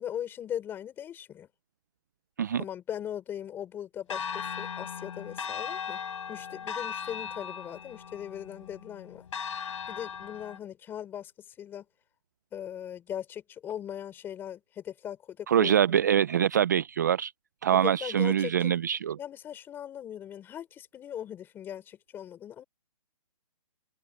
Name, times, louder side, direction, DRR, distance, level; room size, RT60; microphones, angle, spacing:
voice 1, 0.0-1.5 2.5-6.0 6.3-9.3 9.9-11.9 12.5-16.0 17.7-18.7 19.2-22.6, left 10 dB, 10° left, 5.1 m, -39 dB
Church bell, 4.1-10.6, left 7 dB, 55° left, 3.6 m, -38 dB
voice 2, 15.5-17.3 17.6-19.2, right 9 dB, 30° right, 0.4 m, -24 dB
open air
hypercardioid pair, 165°, 20 cm